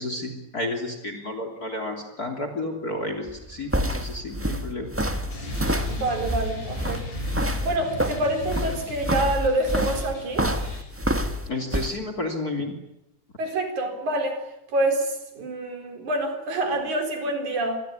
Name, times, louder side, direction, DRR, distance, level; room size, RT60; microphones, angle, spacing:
voice 1, 0.0-4.9 11.5-12.7, left 2 dB, 30° left, 6 dB, 3.5 m, -31 dB
sound 1, 3.3-11.9, equal, 15° right, 0.4 m, -27 dB
sound 2, 5.3-10.9, left 2 dB, 70° left, 9.3 m, -38 dB
voice 2, 5.9-7.0 7.6-10.5 13.4-14.4 14.7-17.8, right 1 dB, 65° right, 6 dB, 5.5 m, -26 dB
27.0 x 21.0 x 9.8 m, 0.85 s
omnidirectional pair, 3.6 m